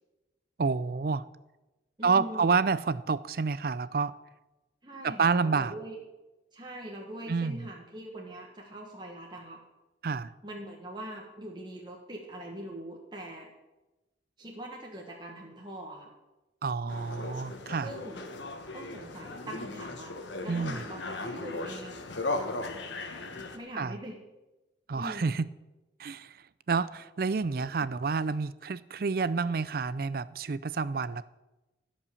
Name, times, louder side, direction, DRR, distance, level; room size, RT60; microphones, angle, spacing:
voice 1, 0.6-1.3 2.0-4.1 5.0-5.7 7.3-7.6 10.0-10.3 16.6-17.9 20.5-20.8 23.8-24.0 24.9-25.4 26.0-26.4 26.7-31.3, right 4 dB, 55° right, 0.4 m, -29 dB
voice 2, 2.0-2.5 4.8-6.0 6.5-9.6 10.4-13.5 14.4-16.1 17.8-18.2 18.7-20.1 20.4-22.0 23.5-24.2 24.9-25.4 27.8-27.9, right 1 dB, 25° right, 1.5 m, -42 dB
sound 1, 16.9-23.6, left 2 dB, 80° left, 1.3 m, -37 dB
16.0 x 5.4 x 7.0 m
head